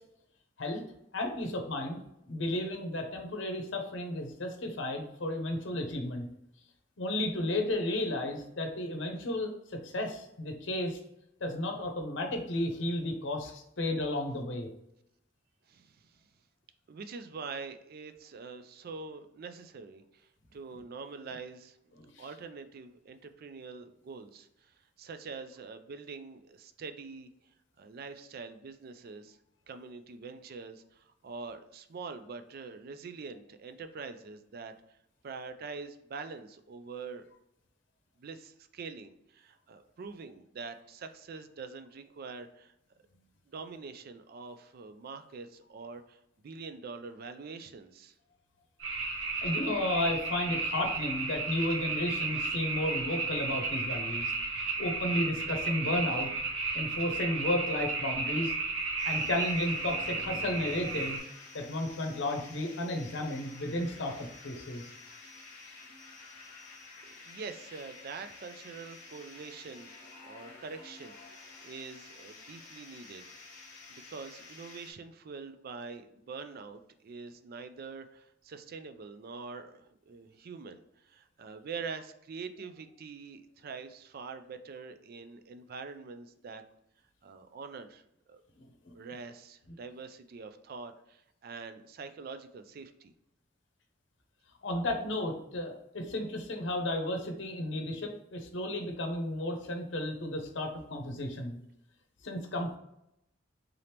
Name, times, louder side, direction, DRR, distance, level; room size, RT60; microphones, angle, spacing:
voice 1, 1.1-2.0 2.3-6.3 7.0-11.0 11.4-14.7 22.0-22.2 49.4-54.3 54.8-56.3 56.7-58.5 59.0-61.2 61.5-64.1 64.4-64.9 88.6-88.9 94.6-101.6 102.2-102.8, left 1 dB, 70° left, 3 dB, 0.7 m, -33 dB
voice 2, 15.7-16.2 16.9-21.8 22.2-27.3 27.8-29.4 29.7-35.0 35.2-37.3 38.2-42.7 43.5-48.1 67.0-69.9 70.2-73.3 74.1-86.6 87.2-88.0 88.3-88.4 88.9-93.1, right 4 dB, 50° right, 9 dB, 0.4 m, -45 dB
sound 1, 48.8-61.2, right 3 dB, 85° right, 0.9 m, -33 dB
sound 2, 59.0-74.9, left 3 dB, 40° left, 1.1 m, -51 dB
3.8 x 2.9 x 3.3 m, 0.80 s
head